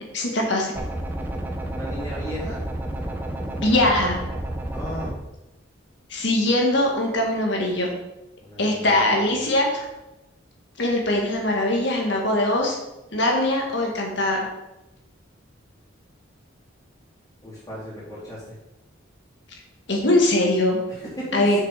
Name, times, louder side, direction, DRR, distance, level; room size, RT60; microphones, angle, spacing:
voice 1, 0.1-0.7 3.6-4.2 6.1-7.9 8.6-9.7 10.8-12.8 13.1-14.4 19.9-20.8 21.3-21.6, left 1 dB, 60° left, 0 dB, 1.9 m, -21 dB
sound 1, 0.8-5.1, right 1 dB, 10° right, 0.7 m, -30 dB
voice 2, 1.7-2.6 4.7-5.1 8.4-9.2 17.4-18.6 20.9-21.4, equal, 15° left, -7 dB, 3.3 m, -35 dB
6.7 x 6.3 x 5.0 m, 0.95 s
head